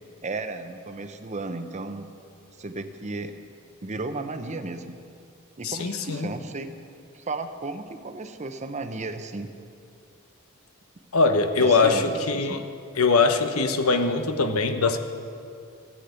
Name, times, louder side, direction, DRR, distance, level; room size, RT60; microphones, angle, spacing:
voice 1, 0.2-2.1 2.6-3.3 3.8-5.0 5.6-6.7 7.1-9.5 11.6-12.6, right 3 dB, 35° right, 9 dB, 0.8 m, -34 dB
voice 2, 5.6-6.3 11.1-12.6 13.0-15.0, left 4 dB, 85° left, 8 dB, 1.0 m, -22 dB
15.0 x 8.5 x 8.2 m, 2.5 s
head